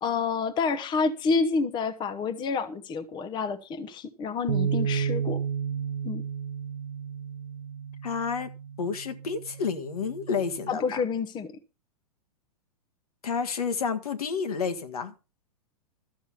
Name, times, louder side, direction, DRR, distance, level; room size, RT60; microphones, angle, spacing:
voice 1, 0.0-5.4 6.0-6.2 10.7-11.5, left 4 dB, 20° left, 0.9 m, -28 dB
sound 1, 4.5-10.7, right 7 dB, 60° right, 0.7 m, -32 dB
voice 2, 8.0-8.5 8.8-11.0 13.2-15.1, left 5 dB, 70° left, 1.6 m, -30 dB
13.0 x 7.1 x 5.6 m
figure-of-eight pair, 110°, 20 cm